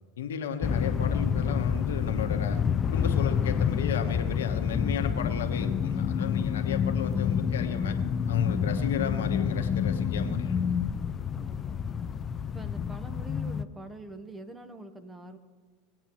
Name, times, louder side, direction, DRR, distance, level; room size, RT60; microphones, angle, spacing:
voice 1, 0.2-8.0 8.3-10.7, left 7 dB, 85° left, 6 dB, 1.1 m, -34 dB
sound 1, 0.6-13.6, left 7 dB, 30° left, 0.4 m, -28 dB
voice 2, 11.3-11.8 12.5-15.4, right 2 dB, 15° right, 8 dB, 1.1 m, -44 dB
19.5 x 8.6 x 3.1 m, 1.4 s
hypercardioid pair, 100°, 0 cm